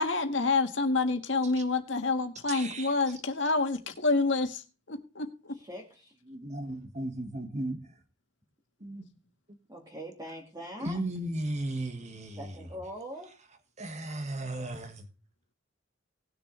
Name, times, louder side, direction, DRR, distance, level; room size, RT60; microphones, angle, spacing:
voice 1, 0.0-4.6 4.9-5.5, left 3 dB, 75° left, 1.7 m, -28 dB
voice 2, 2.5-2.9 6.3-7.8 8.8-9.1 10.8-12.7 13.8-15.1, right 1 dB, 40° right, 1.6 m, -36 dB
voice 3, 5.5-6.1 9.7-11.0 12.3-13.3, equal, 20° right, 2.0 m, -42 dB
19.0 x 6.7 x 3.3 m
head